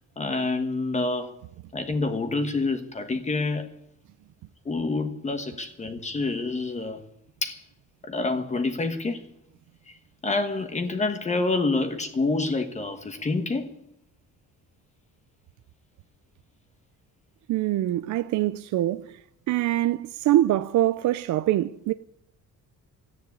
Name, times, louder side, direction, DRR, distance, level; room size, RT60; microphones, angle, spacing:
voice 1, 0.2-1.3 1.7-3.7 4.6-7.0 7.4-7.6 8.0-9.3 9.9-10.0 10.2-13.7, left 3 dB, 20° left, 1.2 m, -27 dB
voice 2, 17.5-19.1 19.5-21.9, right 14 dB, 60° right, 0.6 m, -24 dB
14.5 x 9.8 x 9.3 m
cardioid pair, 175°, 34 cm